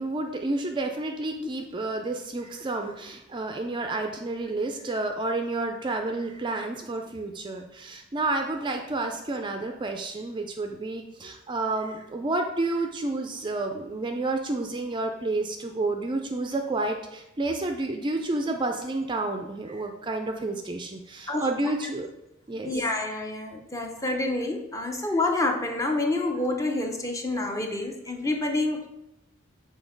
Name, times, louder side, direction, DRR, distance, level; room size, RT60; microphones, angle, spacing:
voice 1, 0.0-22.1 22.5-22.7 24.9-25.1, right 2 dB, 25° right, 4 dB, 0.4 m, -30 dB
voice 2, 22.6-28.9, left 2 dB, 15° left, 3 dB, 0.6 m, -28 dB
6.1 x 3.8 x 5.1 m, 0.88 s
head